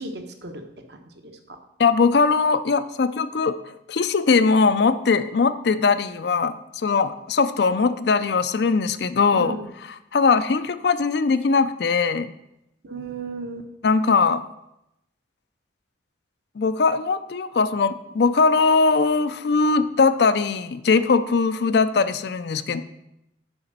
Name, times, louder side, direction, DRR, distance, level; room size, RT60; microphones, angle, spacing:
voice 1, 0.0-1.6 9.3-9.7 12.8-13.7 21.6-21.7, right 2 dB, 60° right, 5 dB, 1.0 m, -36 dB
voice 2, 1.8-3.6 3.9-9.6 10.1-12.3 13.8-14.4 16.6-22.8, left 4 dB, 60° left, 13 dB, 0.4 m, -20 dB
7.1 x 5.0 x 6.6 m, 0.85 s
head